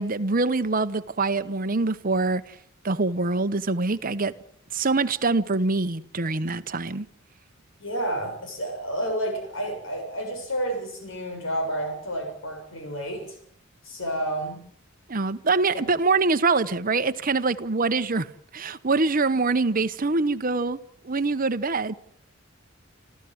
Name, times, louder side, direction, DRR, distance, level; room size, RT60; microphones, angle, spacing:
voice 1, 0.0-2.5 2.8-4.3 4.7-7.1 15.1-20.8 21.0-21.9, right 3 dB, 45° right, 1.0 m, -24 dB
voice 2, 7.8-13.4 13.8-14.6 15.7-15.9, right 1 dB, 70° left, 7.3 m, -30 dB
28.5 x 14.0 x 8.0 m
head